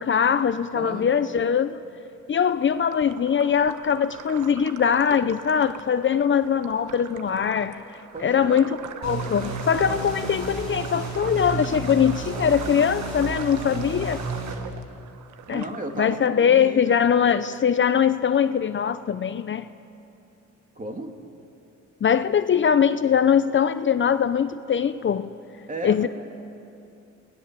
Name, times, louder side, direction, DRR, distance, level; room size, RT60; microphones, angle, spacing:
voice 1, 0.0-1.8 2.3-7.8 8.2-8.8 9.0-14.2 15.5-15.6 16.0-19.7 22.0-25.3 25.8-26.1, left 7 dB, 40° left, 0.7 m, -22 dB
voice 2, 0.7-1.1 8.1-8.8 13.5-13.8 15.5-17.0 20.8-21.1 25.7-26.1, right 2 dB, 25° right, 2.8 m, -35 dB
sound 1, 2.5-16.3, right 8 dB, 75° right, 1.2 m, -42 dB
sound 2, 9.0-14.5, right 3 dB, 60° right, 7.3 m, -32 dB
30.0 x 19.5 x 7.6 m
cardioid pair, 90°, 30 cm